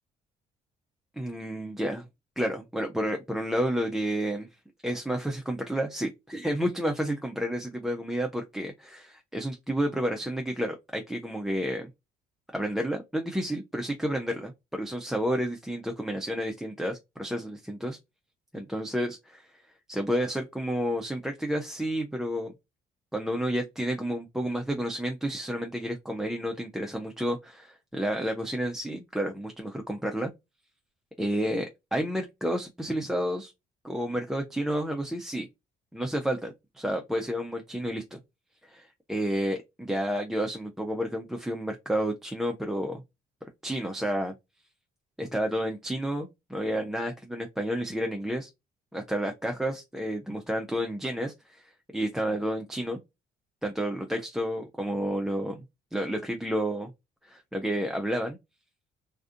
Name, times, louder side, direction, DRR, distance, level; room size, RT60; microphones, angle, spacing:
voice 1, 1.2-2.0 2.4-4.5 4.8-11.9 12.5-18.0 18.5-19.5 19.9-22.5 23.1-30.3 31.2-33.5 33.8-35.5 35.9-38.2 38.6-43.0 43.6-44.3 45.2-48.5 48.9-53.0 53.6-55.6 55.9-56.9 57.2-58.4, equal, ahead, 0.3 m, -30 dB
2.5 x 2.4 x 2.4 m
cardioid pair, 110°, 17 cm